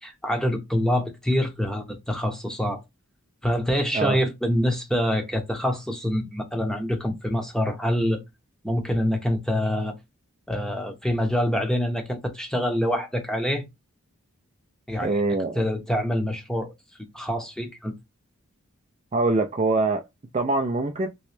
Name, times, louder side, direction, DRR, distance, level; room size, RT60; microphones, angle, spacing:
voice 1, 0.0-2.8 3.4-8.2 8.6-10.0 10.5-13.6 14.9-15.2 15.5-16.7 17.1-17.9, equal, 5° left, 0.7 m, -25 dB
voice 2, 15.0-15.6 19.1-20.1 20.3-21.1, right 3 dB, 30° right, 0.4 m, -24 dB
3.1 x 3.1 x 3.2 m
head